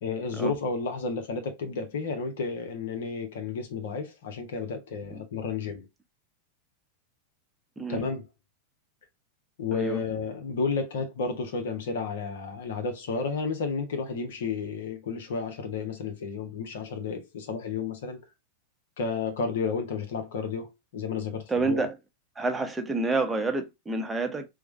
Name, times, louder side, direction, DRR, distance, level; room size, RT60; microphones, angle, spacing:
voice 1, 0.0-5.9 7.9-8.3 9.6-18.2 19.0-21.9, left 5 dB, 60° left, 0.8 m, -32 dB
voice 2, 21.5-22.0 22.4-24.5, right 3 dB, 10° right, 0.7 m, -28 dB
4.7 x 2.1 x 3.0 m
figure-of-eight pair, 90°, 0 cm